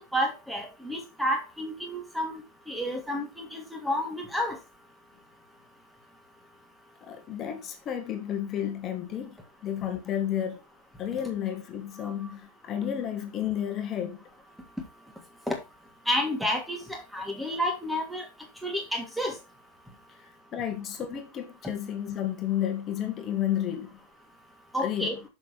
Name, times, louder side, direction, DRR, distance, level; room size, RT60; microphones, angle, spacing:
voice 1, 0.1-2.3 2.7-4.6 15.5-15.6 16.1-18.3 18.6-19.3 24.7-25.1, equal, ahead, 2.7 m, -30 dB
voice 2, 7.0-10.6 11.0-14.2 20.5-23.9 24.8-25.1, left 10 dB, 30° left, 2.0 m, -31 dB
7.2 x 6.9 x 4.4 m
figure-of-eight pair, 90°, 0 cm